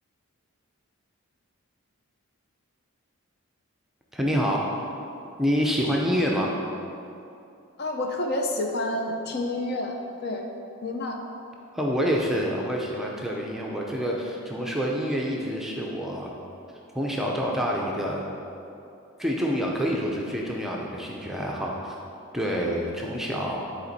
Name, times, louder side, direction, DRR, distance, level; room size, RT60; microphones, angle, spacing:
voice 1, 4.1-4.7 5.4-6.5 11.7-16.3 16.9-18.2 19.2-21.9 22.3-23.6, equal, ahead, -2 dB, 0.5 m, -27 dB
voice 2, 7.8-9.9 10.2-10.4 10.8-11.2, left 1 dB, 45° left, 2 dB, 0.6 m, -29 dB
10.0 x 4.3 x 4.1 m, 2.7 s
head